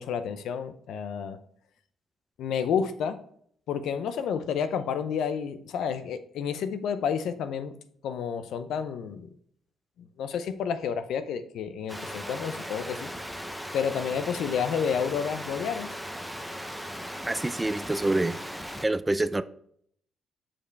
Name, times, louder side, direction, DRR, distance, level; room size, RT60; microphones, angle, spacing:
voice 1, 0.0-1.4 2.4-3.2 3.7-7.7 8.0-9.3 10.2-13.1 13.7-15.9, left 7 dB, 80° left, 11 dB, 0.6 m, -30 dB
sound 1, 11.9-18.9, equal, ahead, 0.7 m, -38 dB
voice 2, 17.3-18.4 18.8-19.4, right 2 dB, 15° right, 14 dB, 0.4 m, -26 dB
7.1 x 5.1 x 3.3 m, 0.66 s
cardioid pair, 90°, 0 cm